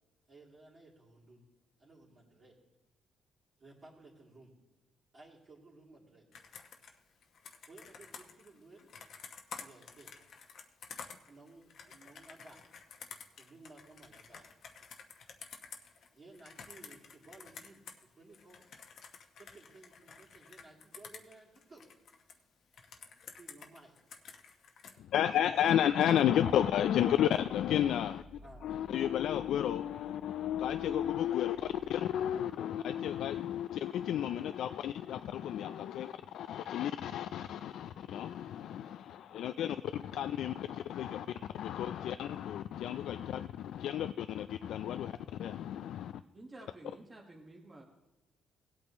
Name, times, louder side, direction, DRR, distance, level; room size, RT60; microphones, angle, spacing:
voice 1, 0.3-1.4 1.8-2.6 3.6-4.5 5.1-6.3 7.6-8.9 9.6-10.1 11.3-12.7 13.3-14.5 16.1-17.8 18.1-18.7 19.3-21.8 23.4-24.0 25.2-26.2 28.4-28.8, right 2 dB, 40° right, -6 dB, 2.8 m, -57 dB
Computer keyboard, 6.3-18.0 18.3-22.3 22.7-25.0, left 6 dB, 65° left, 1.0 m, -51 dB
voice 2, 25.0-28.2 28.6-41.3 41.5-46.1, left 10 dB, 80° left, 10 dB, 0.3 m, -32 dB
sound 1, 26.5-32.5, right 1 dB, 20° left, 1.2 m, -56 dB
voice 3, 46.3-47.8, right 2 dB, 25° right, -1 dB, 1.4 m, -51 dB
18.0 x 8.4 x 3.0 m, 0.99 s
cardioid pair, 105°, 0 cm